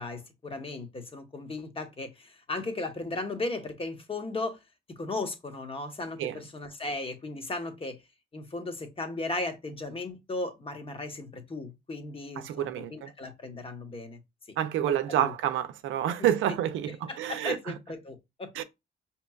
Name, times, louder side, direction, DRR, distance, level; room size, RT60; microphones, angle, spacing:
voice 1, 0.0-4.6 4.9-8.0 8.3-14.2 14.5-15.3 16.2-16.3 17.1-18.5, left 2 dB, 30° left, 0.9 m, -36 dB
voice 2, 12.4-13.1 14.6-17.6 18.5-18.6, right 11 dB, 80° right, 0.5 m, -28 dB
5.1 x 2.9 x 2.3 m
cardioid pair, 90°, 20 cm